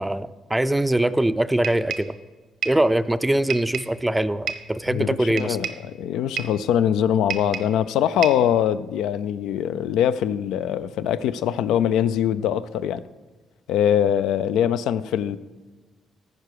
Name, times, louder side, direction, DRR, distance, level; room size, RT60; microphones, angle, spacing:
voice 1, 0.0-2.2 2.7-5.7, right 1 dB, 10° right, 13 dB, 0.4 m, -22 dB
sound 1, 1.6-2.2 2.6-2.9 3.5-4.0 4.5-4.7 5.4-5.9 6.4-6.6 7.3-7.8 8.2-8.5, right 7 dB, 75° right, 0.8 m, -31 dB
voice 2, 4.9-13.0 13.7-15.4, left 9 dB, 90° left, 14 dB, 0.3 m, -23 dB
15.0 x 5.0 x 4.8 m, 1.3 s
cardioid pair, 90°, 0 cm